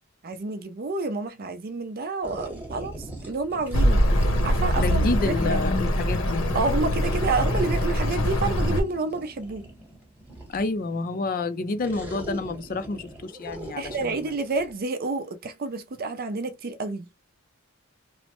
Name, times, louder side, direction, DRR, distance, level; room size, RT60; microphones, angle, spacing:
voice 1, 0.2-2.9 3.2-5.6 6.5-9.7 13.7-17.1, right 3 dB, 45° right, 0.4 m, -29 dB
sound 1, 2.2-5.6 7.0-10.8 11.8-14.7, right 1 dB, 10° right, 1.0 m, -41 dB
Accelerating revving vroom, 3.7-8.8, equal, 65° left, 0.9 m, -23 dB
voice 2, 4.8-6.4 10.5-14.3, left 3 dB, 40° left, 0.4 m, -29 dB
3.0 x 2.1 x 2.9 m
head